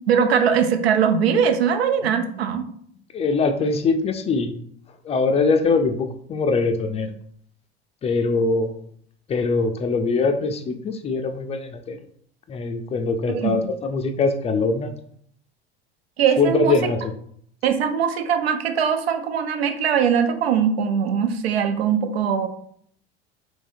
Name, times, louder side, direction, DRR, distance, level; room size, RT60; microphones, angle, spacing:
voice 1, 0.1-2.6 13.3-13.7 16.2-16.8 17.6-22.5, right 7 dB, 80° right, 8 dB, 0.6 m, -21 dB
voice 2, 3.1-4.5 5.0-7.1 8.0-8.8 9.3-12.0 12.5-14.9 16.4-17.1, left 3 dB, 20° left, 6 dB, 0.4 m, -22 dB
3.4 x 3.2 x 2.6 m, 0.64 s
hypercardioid pair, 80°, 31 cm